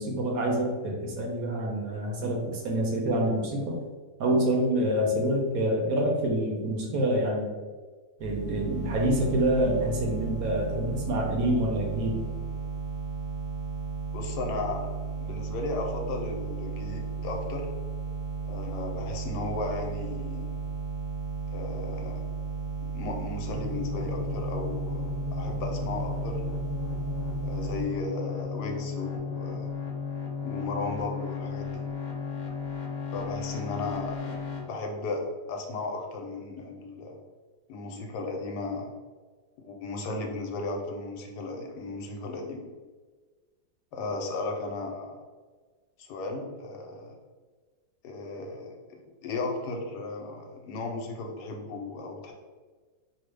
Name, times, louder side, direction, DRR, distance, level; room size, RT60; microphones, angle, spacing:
voice 1, 0.0-3.8 4.2-7.5 8.2-12.2, right 1 dB, 70° right, -1 dB, 1.0 m, -27 dB
sound 1, 8.2-27.8, right 6 dB, 45° left, 0.6 m, -34 dB
voice 2, 14.1-14.9 15.2-17.7 18.4-20.5 21.5-22.2 22.9-26.4 27.4-29.7 30.4-31.8 33.1-37.2 37.7-38.9 39.6-42.6 43.9-45.2 46.0-47.1 48.0-52.3, left 3 dB, 85° left, 2 dB, 1.2 m, -35 dB
sound 2, 23.5-34.6, left 5 dB, 65° left, 0.9 m, -35 dB
3.0 x 2.1 x 3.1 m, 1.4 s
omnidirectional pair, 1.8 m